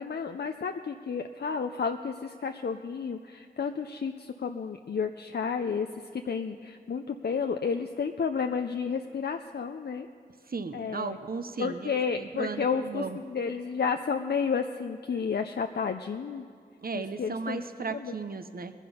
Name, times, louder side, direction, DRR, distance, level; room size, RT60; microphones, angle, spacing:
voice 1, 0.0-5.9 6.1-10.1 10.7-11.2 11.6-16.4 16.9-17.6 17.9-18.1, left 6 dB, 75° left, 6 dB, 0.5 m, -31 dB
voice 2, 10.5-13.2 16.8-18.7, right 4 dB, 60° right, 10 dB, 0.9 m, -35 dB
20.5 x 10.5 x 5.5 m, 2.1 s
cardioid pair, 40°, 17 cm